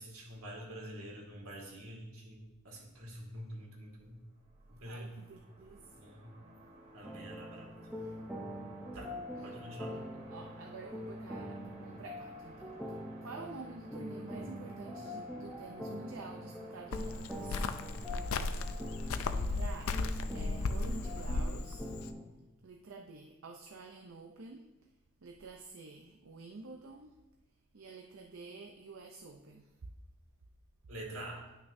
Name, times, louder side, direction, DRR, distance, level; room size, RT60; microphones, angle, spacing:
voice 1, 0.0-4.2 4.7-5.1 6.0-6.4 6.9-7.7 8.9-9.1 9.4-10.0 30.9-31.4, right 1 dB, 85° right, -2 dB, 2.0 m, -46 dB
sound 1, 4.2-21.4, right 1 dB, 30° right, 1.1 m, -57 dB
voice 2, 4.8-5.9 7.9-8.1 9.4-9.6 9.9-17.6 19.3-21.8 22.6-24.7 25.2-27.2 27.7-29.7, right 4 dB, 65° right, 2 dB, 0.5 m, -49 dB
sound 2, 7.0-22.2, equal, 5° right, 0.8 m, -44 dB
Cricket, 16.9-22.1, left 3 dB, 75° left, 0.4 m, -35 dB
10.5 x 6.0 x 2.6 m, 1.0 s
head